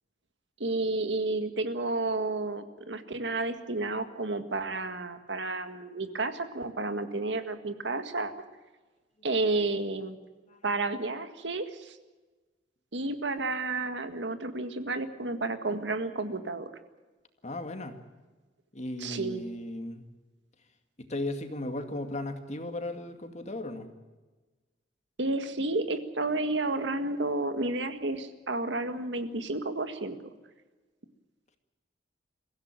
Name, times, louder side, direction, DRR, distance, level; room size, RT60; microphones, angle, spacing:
voice 1, 0.6-8.3 9.2-10.2 10.6-12.0 12.9-16.7 19.0-19.4 25.2-30.2, right 2 dB, 80° right, 9 dB, 1.9 m, -31 dB
voice 2, 17.4-18.0 18.7-20.0 21.0-23.9, left 1 dB, 40° left, 7 dB, 2.2 m, -36 dB
23.5 x 15.5 x 9.0 m, 1.2 s
head